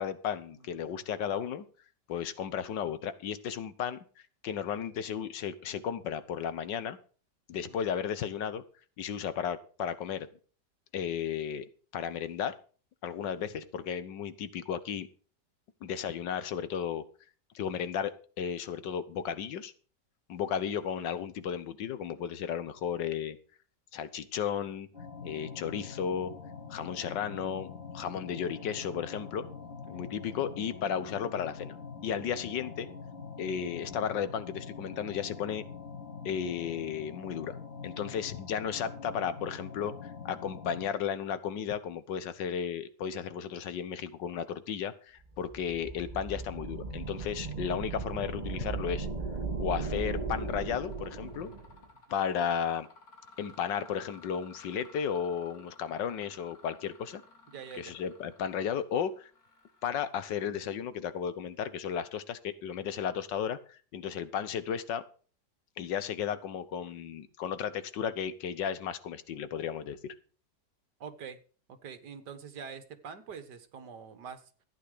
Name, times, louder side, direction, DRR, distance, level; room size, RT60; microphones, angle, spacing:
voice 1, 0.0-1.6 2.1-4.0 4.4-7.0 7.5-8.6 9.0-10.3 10.9-11.7 11.9-12.5 13.0-15.1 15.8-17.0 17.5-18.1 18.4-19.7 20.3-23.4 23.9-24.9 25.2-26.3 26.7-29.5 29.9-31.8 32.0-32.9 33.4-35.6 36.2-37.6 37.8-49.1 49.6-51.5 52.1-52.9 53.4-57.2 57.8-59.3 59.8-65.0 65.8-70.1, left 8 dB, 85° left, 14 dB, 1.7 m, -34 dB
voice 2, 0.5-1.2 7.6-7.8 29.9-30.0 38.0-38.2 57.5-57.9 71.0-71.4 71.7-74.5, right 6 dB, 70° right, 9 dB, 2.0 m, -46 dB
sound 1, 24.9-40.9, left 5 dB, 30° left, 3.8 m, -44 dB
sound 2, 45.3-51.8, right 4 dB, 20° right, 2.0 m, -37 dB
Mechanisms, 49.8-50.1 50.5-61.0, left 3 dB, 55° left, 3.0 m, -57 dB
14.0 x 9.2 x 5.0 m, 0.39 s
omnidirectional pair, 1.9 m